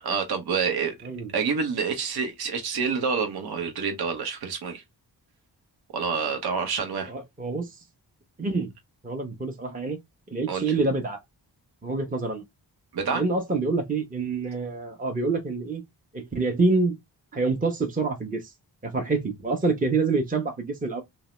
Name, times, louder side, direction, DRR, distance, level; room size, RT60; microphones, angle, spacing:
voice 1, 0.0-0.9 1.3-4.8 5.9-7.1 10.5-10.7 12.9-13.2, right 5 dB, 60° right, 0.8 m, -27 dB
voice 2, 7.1-7.8 8.4-8.7 9.0-10.0 10.3-11.2 11.8-12.4 13.1-15.8 16.1-17.0 17.3-18.5 18.8-21.0, right 3 dB, 20° right, 0.8 m, -26 dB
2.7 x 2.0 x 3.0 m
cardioid pair, 50°, 43 cm